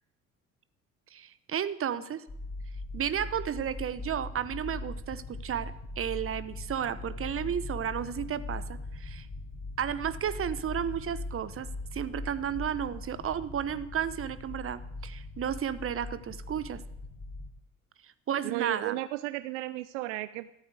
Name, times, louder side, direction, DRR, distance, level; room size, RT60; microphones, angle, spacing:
voice 1, 1.1-2.2 2.9-9.3 9.8-16.8 18.0-19.0, right 9 dB, 35° right, 15 dB, 1.0 m, -33 dB
sound 1, 2.3-17.5, left 2 dB, 35° left, 3.3 m, -40 dB
voice 2, 18.4-20.5, right 16 dB, 70° right, 15 dB, 0.6 m, -34 dB
14.0 x 8.5 x 8.3 m, 0.84 s
figure-of-eight pair, 55°, 37 cm